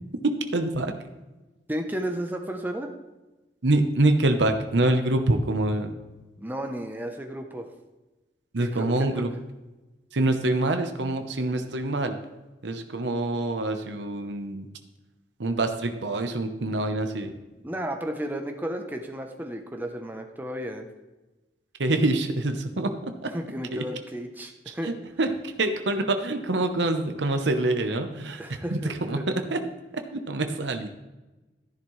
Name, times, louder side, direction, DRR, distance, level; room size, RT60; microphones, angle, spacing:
voice 1, 0.2-0.9 3.6-5.9 8.5-9.3 10.1-12.2 12.6-14.7 15.4-17.3 21.8-23.3 23.7-23.8 24.7-25.3 25.6-28.4 28.7-29.2 29.5-29.6 30.1-30.9, right 2 dB, 85° right, 6 dB, 0.9 m, -25 dB
voice 2, 1.7-2.9 6.4-7.7 8.6-9.2 17.6-20.9 23.3-25.0 28.4-29.2, equal, 10° right, 3 dB, 0.8 m, -33 dB
13.0 x 11.0 x 3.2 m, 1.1 s
head